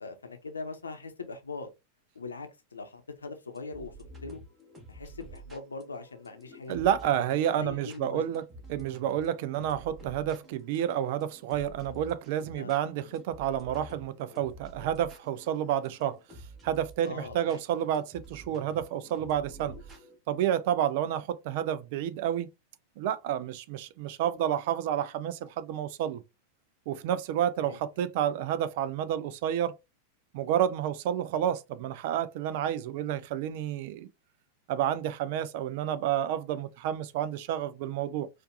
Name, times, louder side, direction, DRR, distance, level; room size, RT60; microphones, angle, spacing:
voice 1, 0.0-1.7 2.1-4.4 4.9-6.9 7.6-8.2 12.6-12.7 17.0-17.6 27.6-27.8, left 4 dB, 75° left, 0.7 m, -41 dB
sound 1, 3.5-20.2, right 1 dB, 15° right, 1.2 m, -50 dB
voice 2, 6.7-8.4 8.7-16.2 16.6-19.8 20.3-22.5 23.0-26.2 26.9-29.7 30.3-34.1 34.7-38.3, right 10 dB, 50° right, 0.4 m, -30 dB
4.5 x 2.5 x 2.5 m
figure-of-eight pair, 90°, 0 cm